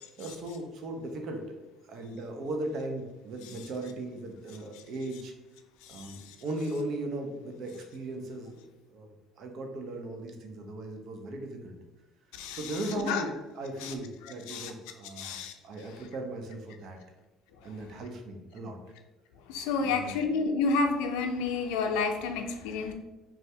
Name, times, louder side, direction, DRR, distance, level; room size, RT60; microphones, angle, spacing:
voice 1, 0.2-1.4 1.9-5.3 5.9-8.6 8.9-9.1 9.4-11.7 12.5-17.0 17.6-18.8 19.8-20.2, right 1 dB, 65° right, 3 dB, 0.5 m, -37 dB
voice 2, 5.8-6.3 12.3-12.8 13.0-13.2 13.8-13.9 14.5-14.7 15.2-15.5 19.5-22.9, left 4 dB, 85° left, 6 dB, 0.4 m, -30 dB
2.6 x 2.3 x 3.2 m, 1.1 s
supercardioid pair, 80°, 0 cm